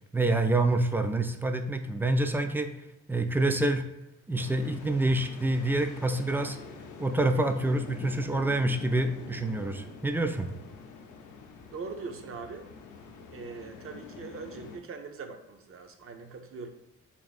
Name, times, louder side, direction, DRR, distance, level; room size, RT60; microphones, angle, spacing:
voice 1, 0.1-2.7 3.1-3.8 4.3-6.6 7.0-10.5, right 2 dB, 5° right, 7 dB, 0.3 m, -27 dB
sound 1, 4.3-14.8, left 5 dB, 75° left, 0.6 m, -46 dB
voice 2, 11.7-12.7 13.3-16.7, right 4 dB, 45° right, 6 dB, 0.6 m, -41 dB
3.5 x 2.5 x 4.1 m, 0.85 s
cardioid pair, 90°, 30 cm